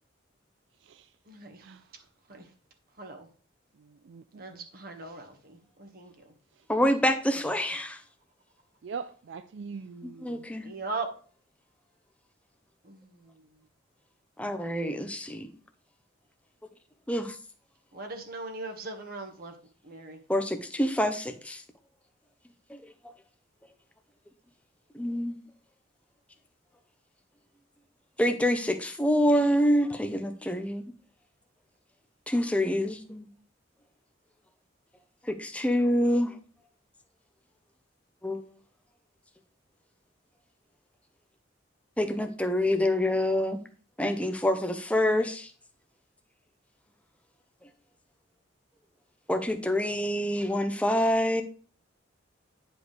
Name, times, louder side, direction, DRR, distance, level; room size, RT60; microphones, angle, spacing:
voice 1, 1.3-1.6 2.3-2.4 3.0-3.3 4.4-6.1 10.6-11.1 12.8-13.1 17.9-19.5 19.8-20.2, right 3 dB, 50° right, 3 dB, 1.4 m, -39 dB
voice 2, 3.8-4.7 8.8-10.5, right 5 dB, 70° right, 12 dB, 0.4 m, -42 dB
voice 3, 6.7-8.0 10.0-10.7 14.4-15.5 17.1-17.4 20.3-21.6 22.7-22.8 24.9-25.4 28.2-30.8 32.3-33.3 35.2-36.4 38.2-38.4 42.0-43.6 44.0-45.5 49.3-51.4, equal, 5° left, 7 dB, 0.7 m, -26 dB
9.8 x 5.2 x 3.2 m, 0.41 s
head